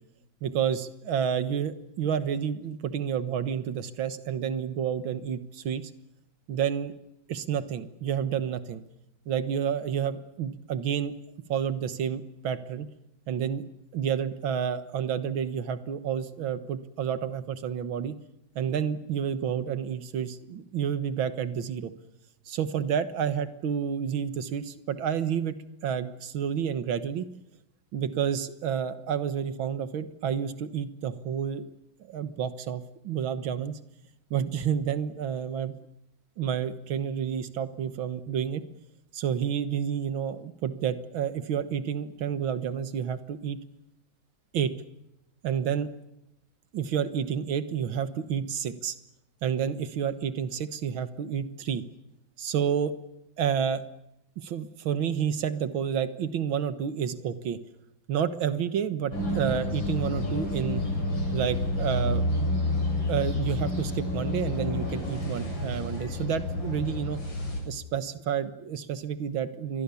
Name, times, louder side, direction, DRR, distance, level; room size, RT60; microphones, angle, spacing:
voice 1, 0.4-5.8 6.5-6.9 7.3-8.8 9.3-11.1 11.5-12.9 13.3-13.7 13.9-18.1 18.6-21.9 22.5-25.5 25.8-27.3 27.9-31.6 32.1-33.8 34.3-35.7 36.4-38.6 39.1-43.6 44.5-44.7 45.4-45.9 46.7-49.0 49.4-51.8 52.4-52.9 53.4-53.8 54.4-57.6 58.1-60.8 61.3-62.2 63.1-67.2 67.7-69.8, right 8 dB, 85° right, 12 dB, 2.1 m, -30 dB
sound 1, 59.1-67.6, left 1 dB, 75° left, 8.7 m, -29 dB
29.0 x 22.5 x 7.0 m, 0.83 s
omnidirectional pair, 2.1 m